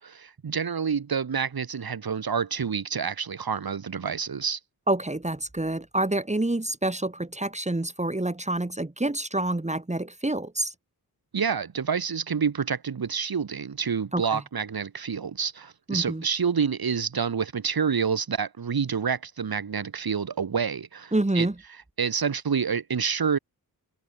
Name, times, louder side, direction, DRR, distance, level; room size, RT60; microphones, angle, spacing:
voice 1, 0.0-4.6 11.3-21.5 22.0-23.4, right 6 dB, 75° right, 5.8 m, -28 dB
voice 2, 4.9-10.7 14.1-14.4 15.9-16.2 21.1-21.5, right 2 dB, 20° right, 4.5 m, -27 dB
cardioid pair, 75°, 37 cm